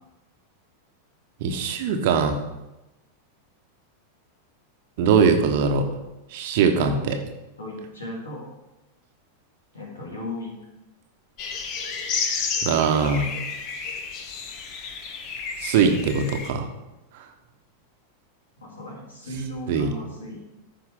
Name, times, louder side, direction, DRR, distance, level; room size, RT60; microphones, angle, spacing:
voice 1, 1.4-2.4 5.0-5.9 6.3-7.2 12.6-13.3 15.6-16.7 17.1-17.2 19.7-19.9, right 6 dB, 50° right, 5 dB, 1.1 m, -21 dB
voice 2, 7.6-8.5 9.7-10.5 18.6-20.4, left 1 dB, 70° left, -3 dB, 3.4 m, -35 dB
sound 1, 11.4-16.5, left 5 dB, 40° left, 1.1 m, -31 dB
14.0 x 5.4 x 3.7 m, 0.99 s
figure-of-eight pair, 90°, 0 cm